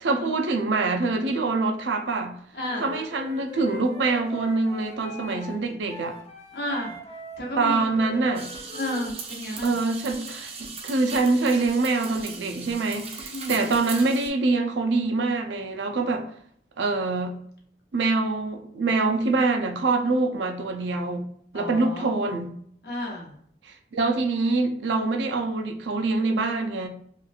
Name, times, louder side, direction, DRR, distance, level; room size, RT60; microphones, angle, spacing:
voice 1, 0.0-2.4 2.8-6.2 7.6-8.4 9.6-16.3 16.8-17.4 17.9-21.3 21.5-22.5 23.6-26.9, right 3 dB, 90° right, 4 dB, 0.5 m, -25 dB
voice 2, 2.5-2.9 6.5-7.0 7.4-9.8 13.3-13.6 21.5-22.1 22.8-23.3, left 1 dB, 60° left, -1 dB, 0.8 m, -33 dB
Wind instrument woodwind instrument, 2.7-9.1, equal, 35° left, 0.4 m, -42 dB
sound 1, 8.3-14.3, right 4 dB, 35° right, 0.4 m, -38 dB
3.0 x 2.4 x 2.3 m, 0.63 s
head